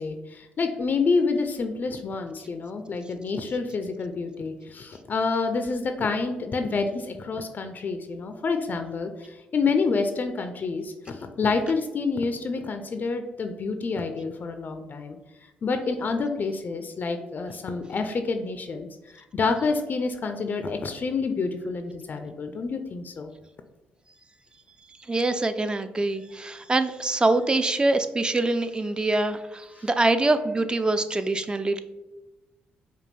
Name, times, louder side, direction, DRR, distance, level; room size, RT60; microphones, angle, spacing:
voice 1, 0.0-15.2 15.6-23.3, left 4 dB, 45° left, 7 dB, 0.4 m, -28 dB
voice 2, 25.1-31.8, right 2 dB, 20° right, 10 dB, 0.4 m, -24 dB
5.1 x 2.2 x 3.2 m, 1.0 s
supercardioid pair, 55°, 4 cm